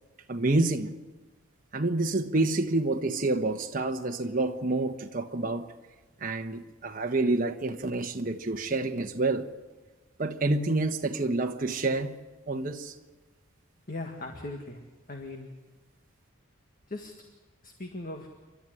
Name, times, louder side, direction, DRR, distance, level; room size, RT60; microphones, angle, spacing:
voice 1, 0.3-0.9 1.7-5.7 6.2-9.5 10.2-12.2 12.5-12.9, right 2 dB, 40° right, 1.2 m, -28 dB
voice 2, 13.9-14.8 15.1-15.5 16.9-17.1 17.6-18.3, left 2 dB, 40° left, 1.8 m, -38 dB
29.5 x 12.5 x 9.9 m
head